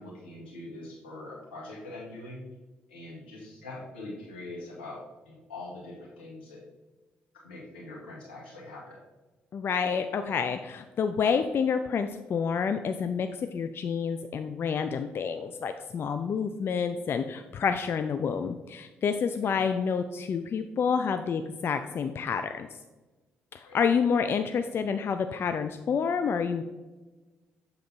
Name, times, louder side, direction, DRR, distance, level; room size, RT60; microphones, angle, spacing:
voice 1, 0.0-2.4 2.9-5.0 5.3-6.6 7.4-9.0 16.2-16.3 19.4-19.6 23.7-23.8, left 2 dB, 85° left, -5 dB, 1.7 m, -43 dB
voice 2, 9.5-22.7 23.5-26.6, left 6 dB, 45° left, 8 dB, 0.4 m, -28 dB
7.2 x 3.8 x 4.4 m, 1.2 s
figure-of-eight pair, 45°, 5 cm